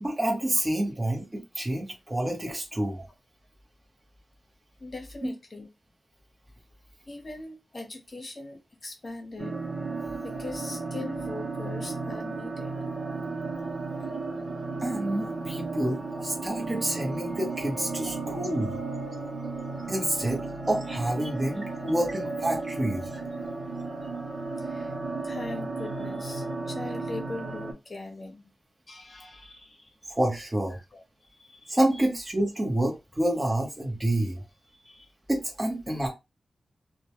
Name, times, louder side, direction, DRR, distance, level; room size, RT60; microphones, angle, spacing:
voice 1, 0.0-3.0 5.2-5.3 14.8-18.8 19.9-23.2 30.1-30.8 31.7-34.4 35.3-36.1, right 1 dB, 20° right, 0 dB, 0.8 m, -28 dB
voice 2, 4.8-5.7 7.1-9.6 10.2-12.8 16.1-16.2 24.6-24.9 25.2-28.5 28.9-29.9 30.7-32.1 34.7-35.1, left 2 dB, 40° left, 3 dB, 0.8 m, -41 dB
sound 1, 9.4-27.7, right 3 dB, 85° right, 0.7 m, -34 dB
2.2 x 2.1 x 2.8 m, 0.24 s
wide cardioid pair, 115°, 0 cm